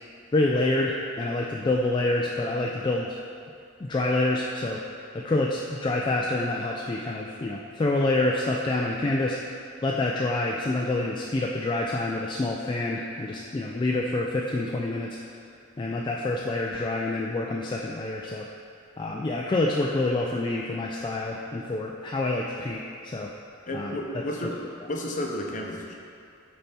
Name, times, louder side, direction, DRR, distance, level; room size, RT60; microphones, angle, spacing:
voice 1, 0.3-3.2 3.8-4.8 5.1-15.2 15.8-18.5 19.0-23.3 23.7-24.0, left 2 dB, 25° left, -2 dB, 0.3 m, -27 dB
voice 2, 23.7-25.9, left 1 dB, 40° left, 0 dB, 0.7 m, -32 dB
6.7 x 4.3 x 4.2 m, 2.5 s
head